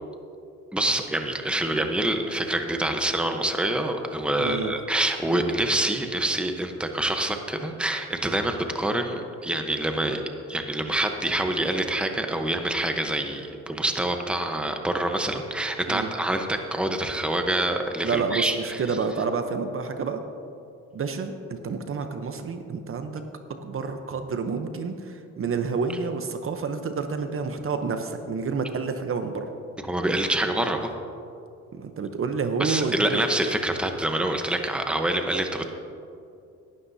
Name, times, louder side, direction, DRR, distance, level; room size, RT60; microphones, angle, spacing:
voice 1, 0.7-10.2 10.5-18.8 29.9-30.9 32.6-35.7, right 1 dB, 5° right, 5 dB, 1.0 m, -26 dB
voice 2, 4.4-4.8 15.9-16.1 18.0-20.2 20.9-23.2 23.6-29.5 31.7-33.2, right 5 dB, 45° right, 7 dB, 0.9 m, -29 dB
17.5 x 12.0 x 2.8 m, 2.5 s
cardioid pair, 90°, 30 cm